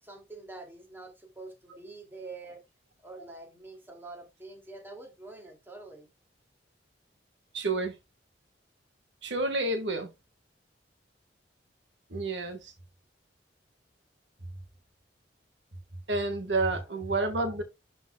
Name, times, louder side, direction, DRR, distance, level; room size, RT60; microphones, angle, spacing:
voice 1, 0.0-2.6 3.0-6.1 16.7-17.1, right 3 dB, 10° right, 2.5 m, -46 dB
voice 2, 7.5-7.9 9.2-10.1 12.1-12.7 16.1-17.6, right 2 dB, 80° right, 1.6 m, -29 dB
12.0 x 5.4 x 2.3 m
head